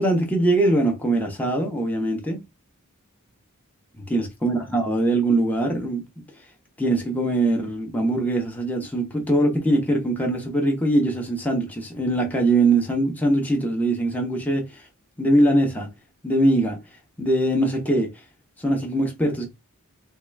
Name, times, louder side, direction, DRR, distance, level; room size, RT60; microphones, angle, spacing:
voice 1, 0.0-2.4 4.1-6.0 6.8-14.8 15.2-15.9 16.2-16.8 17.2-18.1 18.6-19.5, right 1 dB, 5° left, 0.7 m, -22 dB
3.6 x 2.4 x 3.2 m
head